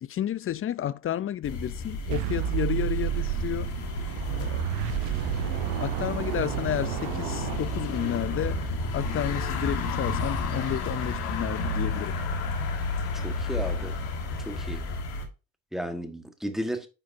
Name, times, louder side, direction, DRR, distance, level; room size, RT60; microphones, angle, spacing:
voice 1, 0.0-3.7 4.3-4.7 5.8-8.6 8.9-12.2, left 11 dB, 30° left, 0.4 m, -31 dB
sound 1, 1.4-15.3, left 2 dB, 80° left, 1.8 m, -31 dB
sound 2, 2.1-8.3, right 15 dB, 75° right, 0.6 m, -31 dB
voice 2, 13.1-14.0 14.4-14.8 15.7-16.9, equal, ahead, 1.4 m, -33 dB
9.6 x 4.7 x 2.6 m
supercardioid pair, 75°, 48 cm